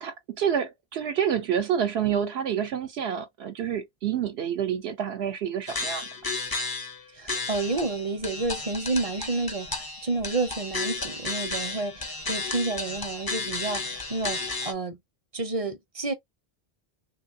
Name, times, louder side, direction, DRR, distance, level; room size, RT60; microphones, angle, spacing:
voice 1, 0.0-6.1, right 8 dB, 80° right, 0.9 m, -28 dB
sound 1, 5.7-7.0 7.3-14.7, left 3 dB, 25° left, 0.6 m, -33 dB
voice 2, 7.1-15.0 15.3-16.1, right 3 dB, 40° right, 0.6 m, -30 dB
3.4 x 3.1 x 2.5 m
omnidirectional pair, 1.1 m